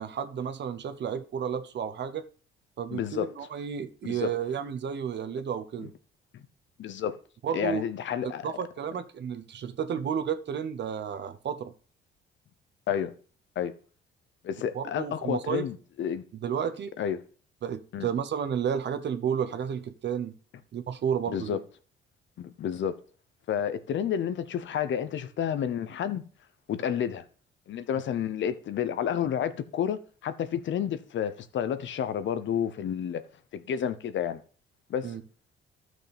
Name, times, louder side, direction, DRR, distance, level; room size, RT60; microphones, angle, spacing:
voice 1, 0.0-2.3 2.8-5.9 7.4-7.8 8.2-11.7 14.7-15.6 16.3-16.9 17.6-20.3 20.7-21.6 35.0-35.2, right 8 dB, 55° right, 0.9 m, -32 dB
voice 2, 2.9-3.3 4.0-4.3 5.8-5.9 6.3-6.4 6.8-7.2 7.5-8.5 12.9-13.1 13.6-13.7 14.4-16.2 17.0-17.2 17.9-18.1 21.3-21.6 22.4-23.0 23.5-26.2 26.7-27.2 27.7-33.2 33.5-34.4 34.9-35.1, left 9 dB, 60° left, 0.8 m, -30 dB
13.0 x 6.2 x 3.5 m
supercardioid pair, 65°, 21 cm